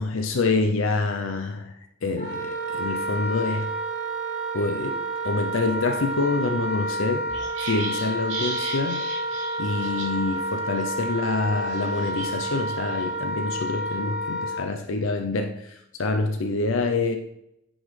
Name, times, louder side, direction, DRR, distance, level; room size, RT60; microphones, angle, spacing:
voice 1, 0.0-3.7 4.5-5.0 5.2-7.2 7.6-9.1 9.6-17.2, left 3 dB, 80° left, 5 dB, 0.6 m, -26 dB
Wind instrument woodwind instrument, 2.2-14.6, right 1 dB, 30° left, 2.5 m, -30 dB
sound 1, 7.3-10.4 10.6-10.8 11.6-13.0 13.5-13.9, right 3 dB, 65° right, 2.7 m, -37 dB
9.6 x 5.1 x 3.3 m, 0.81 s
head